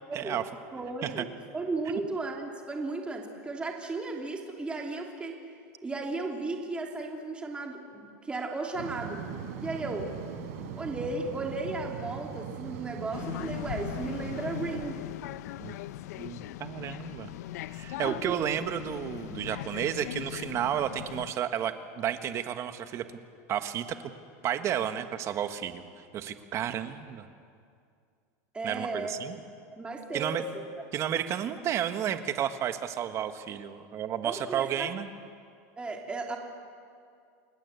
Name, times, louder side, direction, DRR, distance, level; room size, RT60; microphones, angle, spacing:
voice 1, 0.1-0.5 1.0-1.3 15.6-15.8 16.2-17.3 17.7-23.0 23.5-24.0 24.4-25.8 26.1-27.3 28.6-29.4 30.1-30.5 30.9-35.1, right 10 dB, 35° right, 9 dB, 1.6 m, -32 dB
voice 2, 0.7-5.5 5.8-9.2 9.6-10.1 10.7-15.0 18.0-18.4 28.5-29.1 29.7-30.6 34.2-34.9 35.8-36.4, right 3 dB, 10° right, 1 dB, 2.9 m, -35 dB
sound 1, 8.7-14.8, right 7 dB, 70° right, 4.9 m, -40 dB
sound 2, 13.1-21.3, left 14 dB, 75° left, 0.8 m, -39 dB
29.5 x 21.0 x 8.3 m, 2.3 s
supercardioid pair, 145°, 9 cm